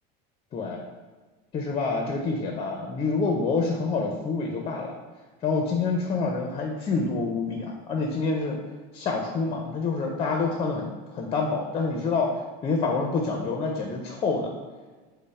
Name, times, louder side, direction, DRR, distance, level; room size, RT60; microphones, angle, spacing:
voice 1, 0.5-0.9 1.5-4.9 5.4-8.6 8.9-12.3 12.6-14.6, left 4 dB, 25° left, 2 dB, 0.5 m, -27 dB
5.3 x 2.1 x 4.1 m, 1.3 s
cardioid pair, 140°, 21 cm